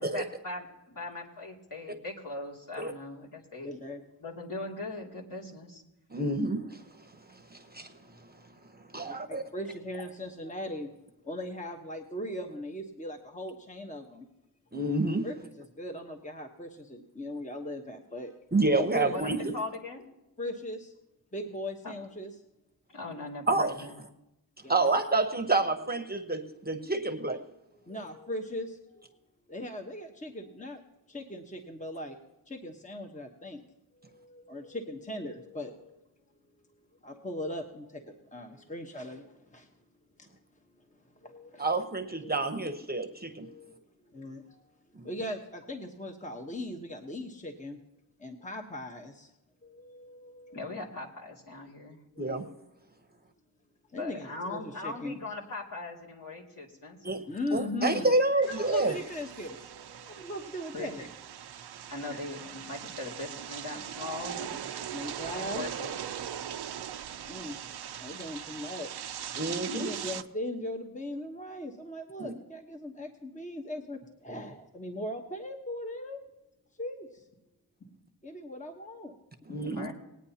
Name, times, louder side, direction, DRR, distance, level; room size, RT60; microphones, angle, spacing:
voice 1, 0.0-3.7 4.2-5.8 19.1-20.1 21.8-21.9 22.9-24.0 50.5-52.0 53.9-57.2 60.7-60.9 61.9-64.7 65.3-65.9 79.6-79.9, left 2 dB, 55° left, -2 dB, 2.6 m, -40 dB
voice 2, 3.6-4.0 9.1-10.9 11.2-14.3 15.2-18.4 18.7-19.2 20.4-20.9 21.3-22.3 24.6-24.9 27.7-29.1 29.5-30.8 31.1-32.2 32.5-33.6 33.9-36.0 37.0-39.7 40.2-40.3 40.7-41.8 42.2-42.5 43.4-44.6 45.0-47.8 48.2-49.3 49.6-50.8 52.2-52.6 53.9-55.2 57.3-61.1 62.1-62.2 64.9-65.6 67.3-67.6 68.0-69.1 69.7-76.2 76.8-77.3 78.2-79.1, left 1 dB, 20° left, 3 dB, 1.1 m, -39 dB
voice 3, 6.1-6.8 7.3-8.0 8.8-9.4 14.7-15.3 18.5-19.5 23.5-23.7 24.7-27.5 41.6-43.5 45.0-45.1 52.2-52.5 57.0-57.2 57.5-59.0 69.4-69.9 72.2-72.3 79.5-79.9, right 2 dB, 25° right, 6 dB, 1.0 m, -28 dB
sound 1, 58.4-70.2, right 9 dB, 75° right, 0.6 m, -40 dB
20.5 x 9.0 x 2.9 m, 0.93 s
cardioid pair, 65°, 39 cm